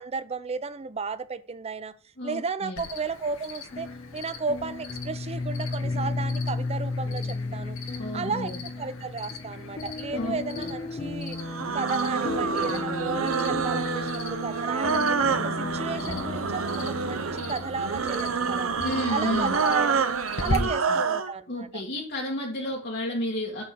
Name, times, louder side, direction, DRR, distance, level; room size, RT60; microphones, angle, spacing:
voice 1, 0.0-1.9 2.2-3.9 4.1-7.8 8.1-8.5 8.8-11.4 11.7-18.7 19.1-20.1 20.4-21.8, right 5 dB, 30° right, 0.5 m, -33 dB
voice 2, 2.2-2.9 8.0-8.6 10.2-10.7 18.8-19.6 20.4-21.0 21.5-23.6, left 1 dB, 55° left, 1.7 m, -32 dB
Cricket, 2.8-20.6, left 3 dB, 85° left, 1.8 m, -41 dB
sound 1, 3.7-19.6, left 3 dB, 30° left, 0.4 m, -34 dB
sound 2, 11.4-21.3, right 5 dB, 90° right, 0.8 m, -28 dB
6.1 x 5.5 x 6.9 m
head